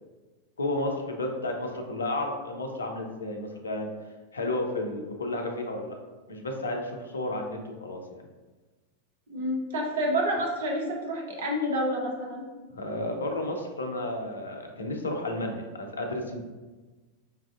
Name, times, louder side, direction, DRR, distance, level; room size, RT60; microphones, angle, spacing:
voice 1, 0.6-3.9 4.3-6.0 6.3-8.2 12.7-16.4, left 1 dB, 75° left, 3 dB, 0.5 m, -32 dB
voice 2, 9.3-12.4, equal, 60° right, 0 dB, 0.6 m, -28 dB
4.7 x 2.5 x 2.3 m, 1.3 s
figure-of-eight pair, 90°, 0 cm